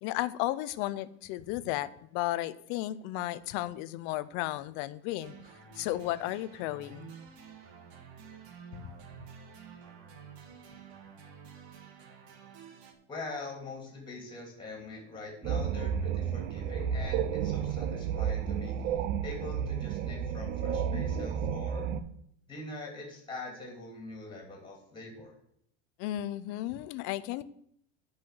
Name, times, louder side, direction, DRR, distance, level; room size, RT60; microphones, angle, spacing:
voice 1, 0.0-5.3 5.8-7.1 8.7-8.9 26.0-27.4, left 15 dB, 35° left, 0.4 m, -34 dB
sound 1, 5.2-12.9, right 7 dB, 65° right, 2.2 m, -50 dB
voice 2, 13.1-21.9 22.5-25.4, left 2 dB, 15° left, 2.9 m, -43 dB
sound 2, 15.4-22.0, right 8 dB, 25° right, 0.4 m, -32 dB
10.0 x 5.7 x 7.6 m
supercardioid pair, 165°, 34 cm